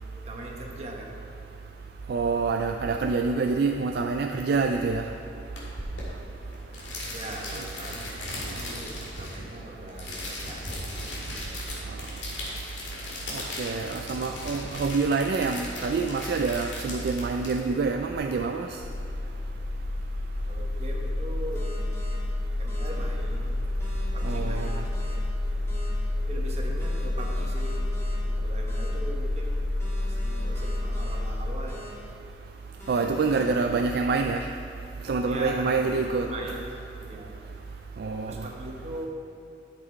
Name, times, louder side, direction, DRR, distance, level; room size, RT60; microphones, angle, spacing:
voice 1, 0.2-1.5 7.1-8.1 8.5-11.9 12.4-12.6 20.5-21.7 22.6-23.6 24.1-25.2 26.2-27.9 28.4-29.7 30.0-31.8 33.1-33.7 35.3-37.6 38.2-39.1, right 1 dB, 35° right, -1 dB, 1.2 m, -41 dB
voice 2, 2.1-5.1 13.6-18.7 24.2-24.8 32.9-34.5 35.1-36.3 38.0-38.3, right 4 dB, 55° right, 4 dB, 0.3 m, -26 dB
sound 1, 5.6-18.2, left 1 dB, 80° left, 2.0 m, -38 dB
sound 2, 18.8-31.7, left 2 dB, 55° left, 0.5 m, -29 dB
sound 3, 21.5-22.1 22.7-22.9 23.8-25.1 25.7-25.9 26.8-28.1 28.7-28.9 29.8-31.1 31.7-31.9 32.8-33.4, equal, 15° left, 1.6 m, -45 dB
11.0 x 6.0 x 4.5 m, 2.6 s
head